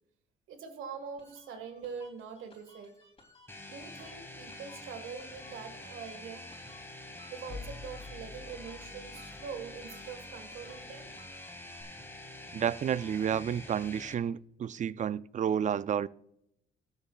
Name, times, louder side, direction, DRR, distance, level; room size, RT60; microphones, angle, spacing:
voice 1, 0.5-2.9 3.7-6.4 7.3-11.1, right 6 dB, 85° right, 1.8 m, -44 dB
sound 1, 1.2-11.8, left 2 dB, 25° left, 3.4 m, -60 dB
sound 2, 3.5-14.1, left 2 dB, 10° left, 1.6 m, -47 dB
sound 3, 7.5-11.3, left 3 dB, 65° left, 1.7 m, -49 dB
voice 2, 12.5-16.1, right 8 dB, 40° right, 0.4 m, -31 dB
21.0 x 7.1 x 2.5 m
cardioid pair, 90°, 20 cm